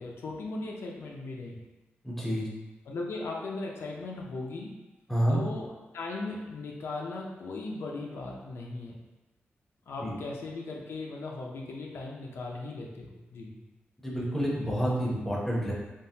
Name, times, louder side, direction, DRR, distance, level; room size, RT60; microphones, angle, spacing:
voice 1, 0.0-1.6 2.9-4.7 5.3-9.0 9.9-13.6, left 3 dB, 80° left, -1 dB, 0.4 m, -38 dB
voice 2, 2.0-2.5 5.1-5.4 10.0-10.1 14.0-15.7, equal, 5° left, -5 dB, 0.6 m, -28 dB
3.5 x 2.0 x 2.7 m, 1.1 s
wide cardioid pair, 150°, 4 cm